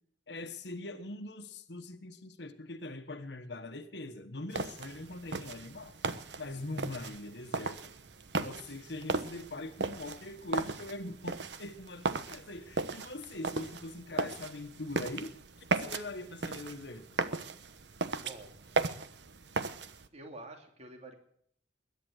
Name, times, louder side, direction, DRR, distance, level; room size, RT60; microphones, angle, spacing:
voice 1, 0.3-6.0 6.4-7.9 8.3-15.3 15.7-17.1, left 2 dB, 70° left, 1.3 m, -42 dB
sound 1, 4.5-20.1, right 3 dB, 80° right, 1.1 m, -37 dB
voice 2, 18.2-18.6 20.1-21.1, right 2 dB, 40° right, 2.7 m, -48 dB
21.5 x 10.5 x 6.5 m
head